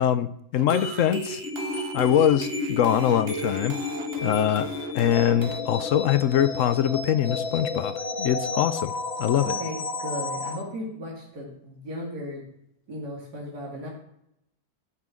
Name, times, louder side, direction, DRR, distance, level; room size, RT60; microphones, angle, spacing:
voice 1, 0.0-1.4 1.9-3.8 4.2-8.9 9.2-9.5, left 10 dB, 65° left, 0.8 m, -23 dB
sound 1, 0.6-5.6, right 7 dB, 50° right, 0.8 m, -41 dB
sound 2, 0.7-10.6, left 2 dB, 40° left, 2.1 m, -32 dB
voice 2, 9.4-12.4 12.9-13.9, equal, 75° right, 3.0 m, -36 dB
13.5 x 5.9 x 7.4 m
omnidirectional pair, 1.7 m